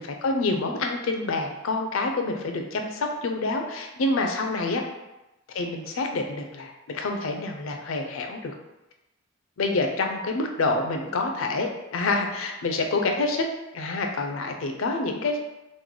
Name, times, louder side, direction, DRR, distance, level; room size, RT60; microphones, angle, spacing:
voice 1, 0.0-4.8 5.5-8.5 9.6-13.5 13.7-15.4, left 3 dB, 65° left, 3 dB, 0.4 m, -27 dB
3.1 x 2.1 x 3.7 m, 0.98 s
head